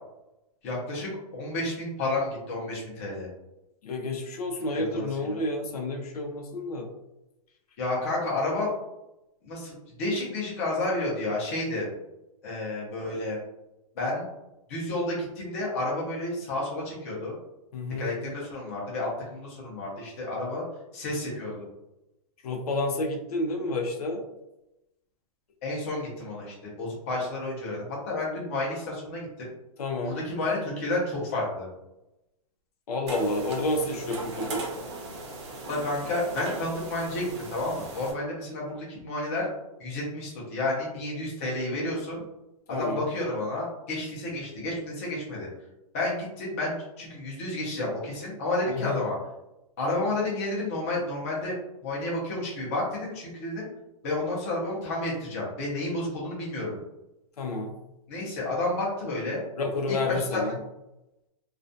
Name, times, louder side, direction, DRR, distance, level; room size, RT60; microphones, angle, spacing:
voice 1, 0.6-3.3 4.7-5.4 7.8-8.7 9.4-9.7 10.0-11.9 12.4-13.4 14.0-14.3 14.7-17.3 18.0-20.6 20.9-21.7 25.6-29.5 30.0-31.7 35.7-39.5 39.8-42.2 42.7-45.5 45.9-49.2 49.8-51.5 51.8-53.7 54.0-56.8 58.1-59.4 59.9-60.0 60.3-60.5, left 2 dB, 25° left, -4 dB, 0.6 m, -31 dB
voice 2, 3.8-6.9 17.7-18.1 22.4-24.2 29.8-30.2 32.9-34.7 42.7-43.0 48.7-49.0 57.4-57.7 59.6-60.6, left 2 dB, 80° left, 2 dB, 0.6 m, -30 dB
sound 1, 33.1-38.1, right 2 dB, 50° right, 0.6 m, -37 dB
2.3 x 2.2 x 2.5 m, 0.91 s
hypercardioid pair, 180°, 19 cm